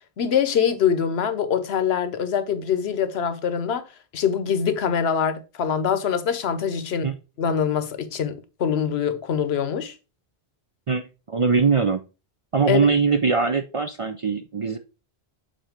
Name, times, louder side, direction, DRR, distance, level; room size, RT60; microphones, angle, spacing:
voice 1, 0.2-3.8 4.1-9.9 12.7-12.8, left 7 dB, 80° left, 1.0 m, -24 dB
voice 2, 10.9-12.0 12.5-14.8, right 5 dB, 45° right, 0.4 m, -21 dB
7.5 x 2.7 x 5.0 m
omnidirectional pair, 1.1 m